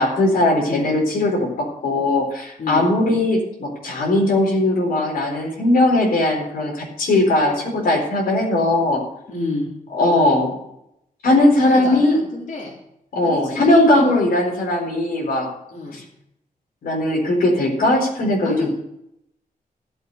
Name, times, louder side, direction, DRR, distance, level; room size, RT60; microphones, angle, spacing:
voice 1, 0.0-9.0 10.0-10.6 11.2-12.2 13.1-15.5 15.9-16.0 16.8-18.7, left 1 dB, 85° left, -1 dB, 4.2 m, -19 dB
voice 2, 0.6-0.9 2.6-2.9 9.3-9.7 11.7-12.7 13.2-14.1 15.7-16.0 18.4-18.7, left 3 dB, 60° left, -4 dB, 3.6 m, -29 dB
14.0 x 7.8 x 6.7 m, 0.80 s
wide cardioid pair, 175°, 15 cm